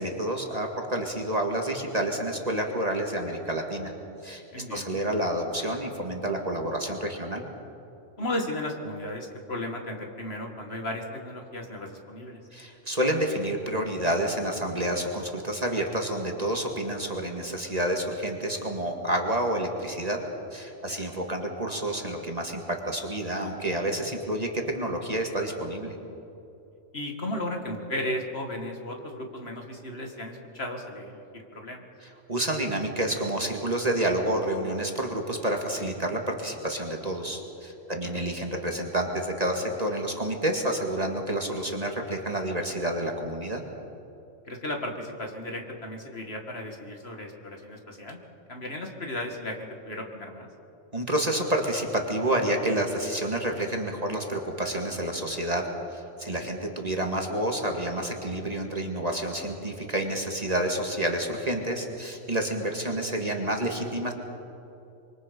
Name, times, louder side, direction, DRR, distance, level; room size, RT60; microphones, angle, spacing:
voice 1, 0.0-3.9 4.2-4.4 4.7-7.4 12.5-20.2 20.5-26.0 32.3-43.6 50.9-55.6 55.9-64.1, right 1 dB, 30° right, 2 dB, 2.1 m, -29 dB
voice 2, 4.5-4.9 8.2-12.4 20.9-21.0 26.9-31.8 37.9-38.2 44.5-48.2 48.5-50.5 56.4-56.5, left 1 dB, 50° left, 2 dB, 2.5 m, -35 dB
26.0 x 24.0 x 5.3 m, 2.9 s
omnidirectional pair, 1.3 m